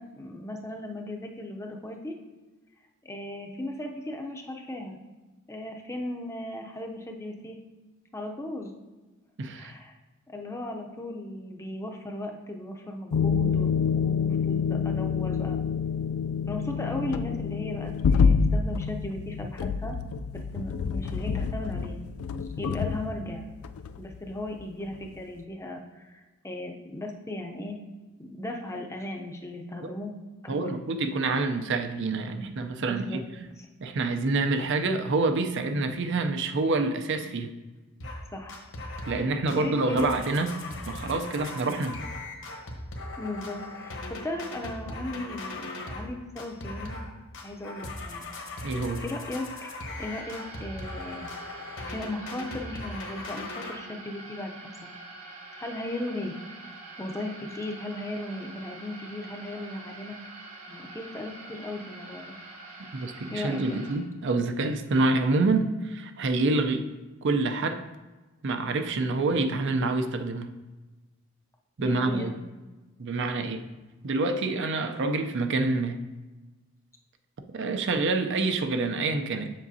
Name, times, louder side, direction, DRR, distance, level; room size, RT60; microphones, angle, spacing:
voice 1, 0.0-2.2 3.0-5.0 5.5-7.6 8.1-8.7 9.6-9.9 10.3-13.7 14.0-15.6 16.5-20.0 20.3-22.0 22.6-23.4 24.0-27.8 28.2-30.1 30.4-30.8 32.9-33.2 33.6-33.7 38.3-38.6 39.6-40.1 43.2-47.0 47.4-48.3 48.6-49.7 50.0-51.3 51.8-55.0 55.6-56.3 57.0-60.2 60.7-62.4 63.3-63.8 71.8-72.3, left 1 dB, 15° left, 2 dB, 0.6 m, -37 dB
voice 2, 9.4-9.7 29.8-29.9 30.5-33.2 33.8-37.5 39.1-40.5 40.9-42.0 48.6-49.0 62.9-66.8 67.2-67.8 68.4-70.5 71.8-72.3 73.0-73.6 74.0-76.0 77.5-79.5, right 3 dB, 55° right, 7 dB, 0.5 m, -27 dB
sound 1, 13.1-24.6 24.9-25.2, left 6 dB, 80° left, 0.4 m, -27 dB
sound 2, 38.0-38.2 38.5-39.2 39.5-46.1 46.4-47.1 47.3-53.7, left 2 dB, 60° left, 1.1 m, -39 dB
sound 3, 49.8-63.9, right 2 dB, 85° right, 1.7 m, -45 dB
7.4 x 7.1 x 2.7 m, 1.2 s
head